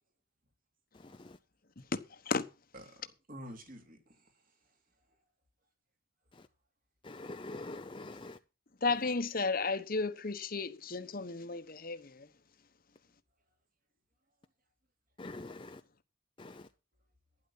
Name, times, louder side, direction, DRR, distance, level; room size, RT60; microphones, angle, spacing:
voice 1, 2.7-4.8, equal, 45° right, 2.8 m, -50 dB
voice 2, 7.0-8.4 15.2-15.8 16.4-16.6, left 2 dB, 25° left, 0.6 m, -44 dB
voice 3, 8.8-12.3, left 4 dB, 45° left, 1.1 m, -33 dB
12.0 x 10.0 x 5.7 m
head